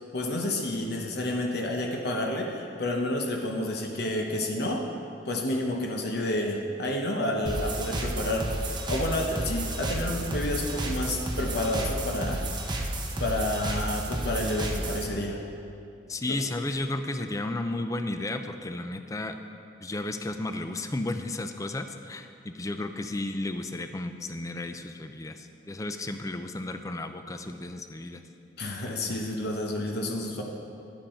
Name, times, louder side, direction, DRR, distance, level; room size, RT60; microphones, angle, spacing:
voice 1, 0.1-4.9 5.3-8.5 8.9-12.4 13.2-15.4 16.3-16.4 28.6-30.4, left 1 dB, 60° left, 1 dB, 0.8 m, -30 dB
sound 1, 7.5-15.0, right 1 dB, 25° right, 0.8 m, -31 dB
voice 2, 16.1-19.4 19.8-28.2, left 2 dB, 20° left, 8 dB, 0.4 m, -33 dB
10.5 x 7.8 x 4.3 m, 2.6 s
head